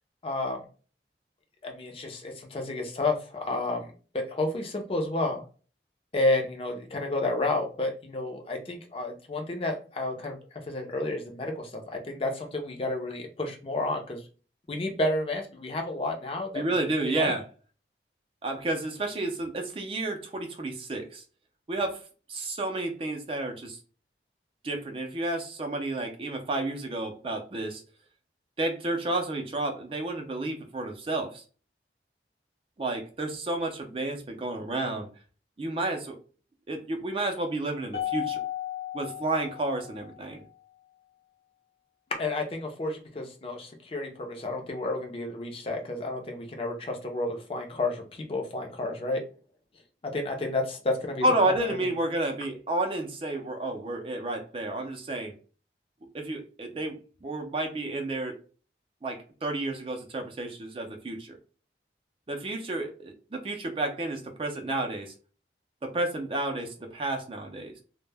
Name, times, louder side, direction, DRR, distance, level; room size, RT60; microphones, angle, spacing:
voice 1, 0.2-0.6 1.6-3.9 4.1-5.4 6.1-10.4 10.7-14.2 14.7-16.6 17.1-17.3 42.2-49.2 50.0-51.2, left 2 dB, 30° left, 2 dB, 0.5 m, -31 dB
voice 2, 16.5-17.4 18.4-21.2 21.7-22.0 22.3-23.8 24.6-27.8 28.6-31.4 32.8-35.1 35.6-36.2 36.7-38.4 38.9-40.4 51.2-55.4 56.1-58.4 59.0-61.4 62.3-65.1 65.8-67.7, right 2 dB, 30° right, 3 dB, 0.4 m, -31 dB
Mallet percussion, 37.9-40.4, left 12 dB, 80° left, 0.7 m, -35 dB
2.1 x 2.0 x 3.2 m, 0.37 s
head